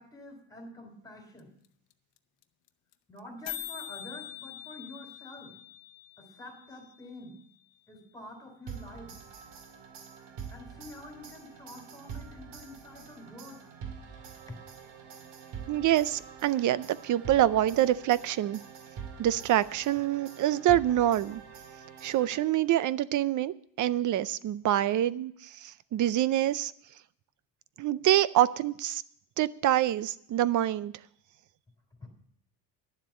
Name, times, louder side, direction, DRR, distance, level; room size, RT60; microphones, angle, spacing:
voice 1, 0.0-1.5 3.1-5.6 6.2-7.4 7.9-9.2 10.5-13.7 14.5-14.6 32.0-32.1, left 1 dB, 10° left, 3 dB, 3.3 m, -47 dB
sound 1, 1.4-1.5 1.6-1.7 1.9-2.2 2.4-2.5 2.7-2.9 3.2-3.3 3.4-7.4, left 13 dB, 55° left, 0.8 m, -44 dB
sound 2, 8.7-22.8, right 7 dB, 75° right, 2.2 m, -46 dB
voice 2, 15.7-18.6 19.2-21.4 22.0-26.7 27.8-29.0 29.4-30.9, right 12 dB, 45° right, 18 dB, 0.5 m, -26 dB
11.0 x 7.5 x 8.1 m, 0.67 s
cardioid pair, 145°, 43 cm